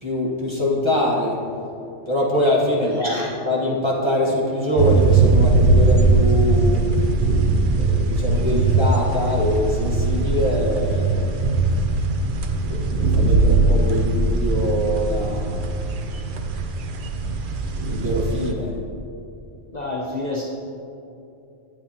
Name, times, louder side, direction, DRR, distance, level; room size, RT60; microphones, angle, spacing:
voice 1, 0.0-1.4 2.1-3.2 3.4-6.8 7.7-11.3 12.7-15.7 17.9-18.7, left 1 dB, 25° right, -5 dB, 1.3 m, -23 dB
voice 2, 2.8-3.3 19.7-20.4, left 2 dB, 40° left, -5 dB, 0.8 m, -29 dB
sound 1, 4.8-18.5, right 3 dB, 55° right, 0.6 m, -20 dB
9.1 x 8.6 x 2.8 m, 2.7 s
omnidirectional pair, 1.2 m